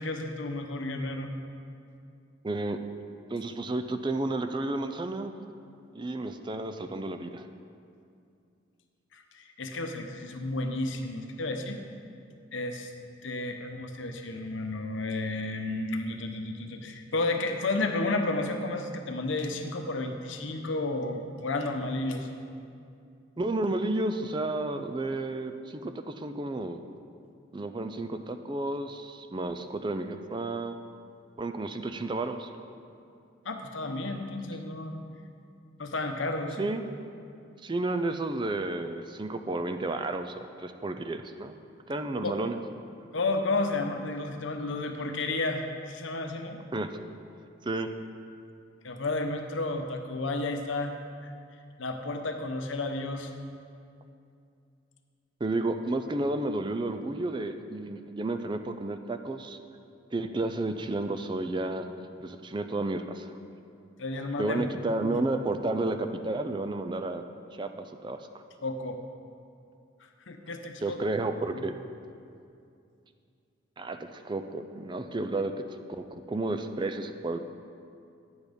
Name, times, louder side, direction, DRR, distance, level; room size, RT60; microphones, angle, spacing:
voice 1, 0.0-1.3 9.1-11.8 12.5-12.9 13.2-22.3 33.4-35.0 35.8-36.6 42.2-42.4 43.1-46.6 48.8-51.0 51.2-51.3 51.8-53.3 64.0-65.2 68.6-69.0 70.3-71.0 71.5-71.6, left 2 dB, 75° left, 5 dB, 0.9 m, -32 dB
voice 2, 2.4-2.8 3.3-5.3 5.9-7.5 23.4-26.8 27.5-30.8 31.4-32.5 36.6-36.8 37.6-41.6 41.9-42.6 46.7-47.0 47.6-47.9 55.4-59.6 60.1-61.9 62.2-63.3 64.4-67.3 67.6-68.4 70.8-71.7 73.8-77.4, right 2 dB, 25° right, 8 dB, 0.4 m, -32 dB
9.7 x 8.4 x 5.2 m, 2.5 s
head